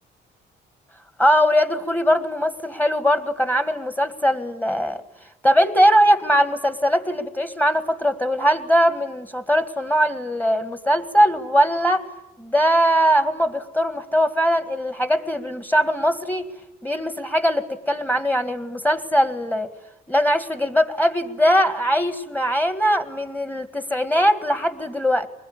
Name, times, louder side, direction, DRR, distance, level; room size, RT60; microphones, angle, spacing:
voice 1, 1.2-5.0 5.4-12.0 12.4-16.4 16.8-19.7 20.1-25.3, equal, 10° left, 11 dB, 1.9 m, -20 dB
24.5 x 21.0 x 10.0 m, 0.89 s
cardioid pair, 90°, 20 cm